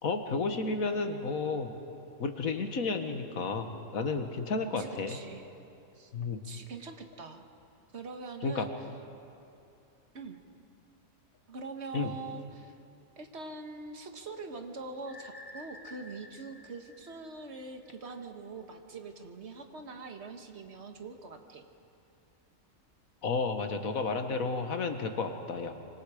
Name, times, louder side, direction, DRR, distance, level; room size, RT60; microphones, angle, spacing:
voice 1, 0.0-1.7 2.2-3.7 3.9-5.2 6.1-6.4 8.4-8.7 11.9-12.1 23.2-25.9, left 4 dB, 90° left, 6 dB, 1.8 m, -32 dB
voice 2, 4.8-5.4 5.9-6.1 6.4-7.4 7.9-8.7 10.1-10.4 11.5-12.7 13.2-21.6, right 3 dB, 55° right, 5 dB, 1.7 m, -43 dB
sound 1, 15.1-17.9, left 1 dB, 15° left, 1.1 m, -51 dB
25.5 x 25.0 x 5.0 m, 2.6 s
omnidirectional pair, 1.4 m